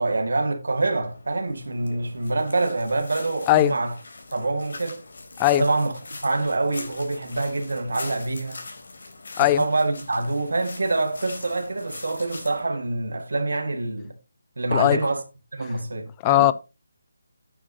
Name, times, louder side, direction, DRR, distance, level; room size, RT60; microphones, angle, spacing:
voice 1, 0.0-3.9 4.3-5.0 5.5-8.6 9.4-14.1 14.6-15.2 15.5-16.5, right 2 dB, 80° right, 1.9 m, -26 dB
sound 1, 1.0-12.7, left 3 dB, 60° left, 3.3 m, -42 dB
voice 2, 3.5-3.7 5.4-5.7 9.4-9.6 14.7-15.0 16.2-16.5, left 15 dB, 15° left, 0.4 m, -18 dB
10.0 x 9.2 x 2.8 m
hypercardioid pair, 170°, 0 cm